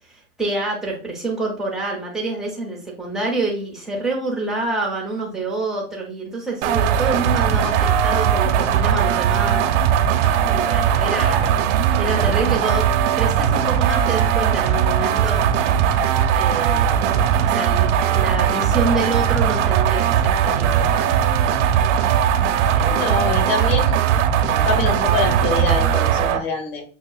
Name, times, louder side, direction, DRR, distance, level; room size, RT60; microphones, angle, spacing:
voice 1, 0.1-9.6 10.4-11.5 12.0-15.5 16.3-21.2 22.7-23.1, right 2 dB, ahead, -3 dB, 0.4 m, -27 dB
sound 1, 6.6-26.4, right 9 dB, 65° right, 0.6 m, -19 dB
voice 2, 22.9-24.0 24.5-26.8, left 4 dB, 75° left, 2 dB, 1.6 m, -25 dB
6.2 x 2.3 x 2.3 m, 0.39 s
supercardioid pair, 150°, 40 cm